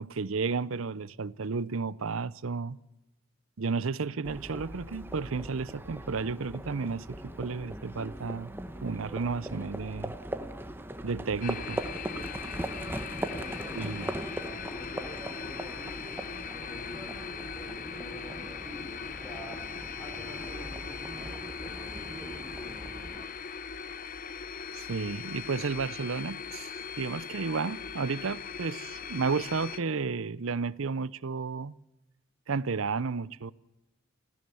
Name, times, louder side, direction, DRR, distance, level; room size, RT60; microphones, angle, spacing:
voice 1, 0.0-2.8 3.6-8.5 8.8-10.1 11.0-11.8 13.7-14.1 24.7-31.8 32.5-33.5, right 4 dB, 75° right, 0.7 m, -32 dB
Livestock farm animals working animals, 4.2-23.2, right 1 dB, 10° right, 1.1 m, -40 dB
sound 1, 11.4-29.8, left 6 dB, 40° left, 0.7 m, -40 dB
voice 2, 13.3-16.2 16.6-17.2 17.5-19.6 20.0-22.9, equal, 10° left, 4.0 m, -48 dB
26.0 x 16.0 x 7.0 m
head